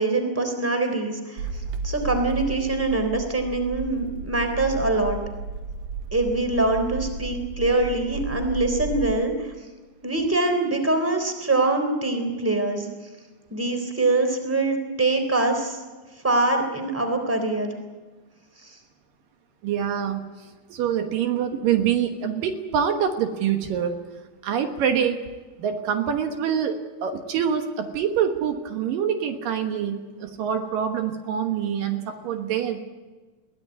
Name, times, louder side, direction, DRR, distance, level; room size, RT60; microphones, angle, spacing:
voice 1, 0.0-1.5 1.8-5.2 6.1-9.5 10.0-12.9 13.5-15.8 16.2-17.8, right 2 dB, 5° right, 6 dB, 3.2 m, -24 dB
sound 1, 1.4-9.1, right 4 dB, 55° right, 2.2 m, -33 dB
voice 2, 19.6-20.2 20.7-24.0 24.4-25.2 25.6-32.8, right 8 dB, 75° right, 6 dB, 3.0 m, -25 dB
22.5 x 16.5 x 9.6 m, 1.3 s
omnidirectional pair, 4.1 m